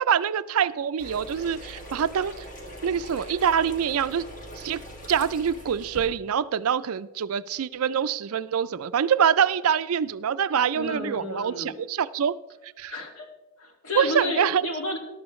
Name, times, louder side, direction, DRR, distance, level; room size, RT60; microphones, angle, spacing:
voice 1, 0.0-2.4 2.8-4.3 4.6-4.8 5.1-12.4 12.8-12.9 13.9-14.7, right 8 dB, 70° right, 16 dB, 0.4 m, -25 dB
sound 1, 1.0-6.1, equal, 35° left, 2.0 m, -42 dB
voice 2, 10.8-11.8 12.9-13.3 13.6-15.0, left 1 dB, 65° left, 2 dB, 2.2 m, -32 dB
14.0 x 11.5 x 3.1 m, 1.1 s
head